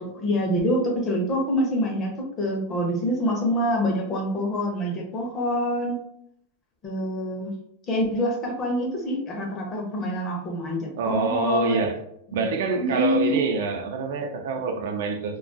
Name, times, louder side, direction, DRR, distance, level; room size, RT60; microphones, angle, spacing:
voice 1, 0.0-6.0 6.8-7.5 7.9-11.8 12.3-12.4 12.8-13.4, equal, 20° left, 0.5 m, -26 dB
voice 2, 11.0-12.0 12.3-15.4, right 4 dB, 65° right, 0.4 m, -26 dB
2.3 x 2.2 x 2.5 m
supercardioid pair, 170°, 0 cm